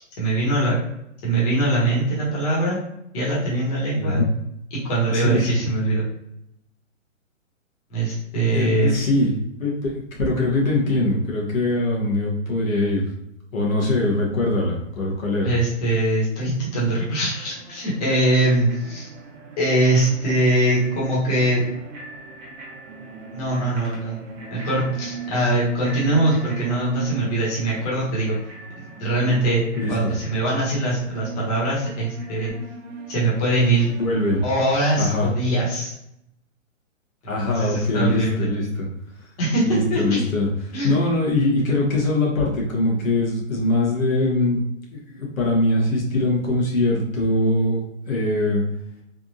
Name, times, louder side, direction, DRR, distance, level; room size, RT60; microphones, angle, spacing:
voice 1, 0.2-0.8 1.2-2.8 3.1-4.2 4.7-6.1 7.9-8.9 15.4-19.1 19.6-21.6 23.3-24.2 24.5-28.4 28.7-29.6 29.9-32.5 33.1-33.9 34.4-35.9 37.5-38.5 39.4-40.3 40.7-41.0, right 1 dB, 30° left, -6 dB, 1.3 m, -22 dB
voice 2, 4.0-4.3 5.1-5.5 8.5-9.3 9.6-13.0 13.5-15.5 29.7-30.1 34.0-34.4 35.0-35.3 37.3-38.9 39.7-40.5 40.8-44.6 44.9-48.6, left 2 dB, 85° left, -3 dB, 1.3 m, -22 dB
sound 1, 16.9-35.6, right 6 dB, 65° right, 0.7 m, -39 dB
Bicycle bell, 18.4-32.5, equal, 15° right, 0.6 m, -46 dB
3.5 x 2.5 x 2.7 m, 0.79 s
hypercardioid pair, 150°, 40 cm